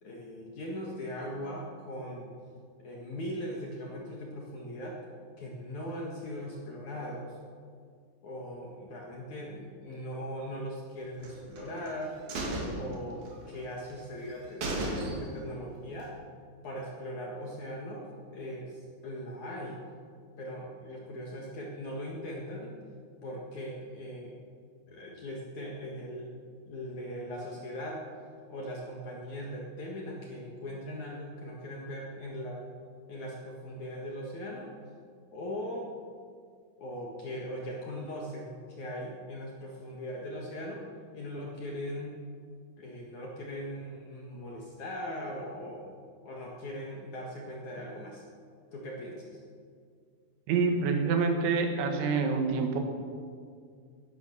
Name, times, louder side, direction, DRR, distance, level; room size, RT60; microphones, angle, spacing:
voice 1, 0.0-2.3 2.8-5.0 5.4-7.4 8.2-12.1 12.7-16.1 16.6-18.1 18.3-19.8 20.4-22.8 23.2-24.3 24.9-26.3 26.7-28.0 28.5-32.6 33.1-34.7 35.3-35.9 36.8-40.8 41.1-42.1 42.8-45.9 46.2-48.2 48.7-49.4, equal, 60° left, -2 dB, 2.0 m, -39 dB
sound 1, 11.2-11.9 12.3-13.6 13.9-14.0 14.3-14.4 14.6-15.5 15.9-16.0, right 2 dB, 50° right, 4.1 m, -35 dB
voice 2, 50.5-52.8, right 4 dB, 70° right, 4 dB, 3.8 m, -27 dB
18.0 x 11.5 x 6.9 m, 2.2 s
omnidirectional pair, 5.7 m